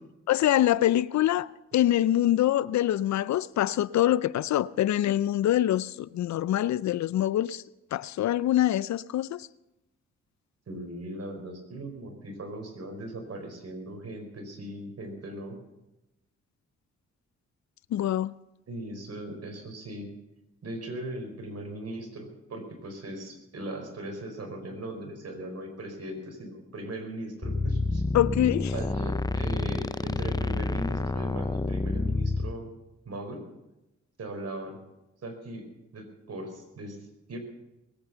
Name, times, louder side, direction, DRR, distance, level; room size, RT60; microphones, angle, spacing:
voice 1, 0.3-7.6 7.9-9.5 17.9-18.3 28.1-28.7, left 13 dB, 70° left, 0.5 m, -25 dB
voice 2, 10.7-15.6 18.7-20.1 20.6-28.1 28.7-32.7 33.0-33.4 34.2-34.8 35.2-35.6 35.9-37.0 37.3-37.4, right 1 dB, 60° right, 4.7 m, -39 dB
sound 1, 27.4-32.5, left 3 dB, 15° left, 0.6 m, -28 dB
20.5 x 9.3 x 6.9 m
cardioid pair, 60°, 29 cm